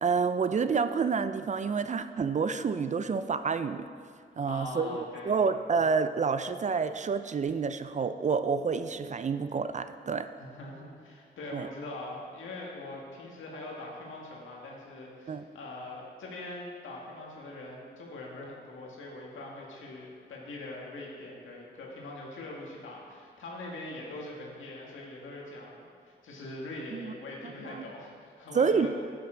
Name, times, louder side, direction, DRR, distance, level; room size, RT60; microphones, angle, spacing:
voice 1, 0.0-3.9 4.4-4.9 5.3-10.3 11.5-11.7 15.3-15.4 26.9-27.1 27.7-27.8 28.5-28.9, right 5 dB, 40° right, 11 dB, 0.4 m, -28 dB
voice 2, 4.5-5.4 10.4-28.9, left 2 dB, 85° left, -3 dB, 1.8 m, -42 dB
10.5 x 8.6 x 3.9 m, 2.1 s
cardioid pair, 80°, 20 cm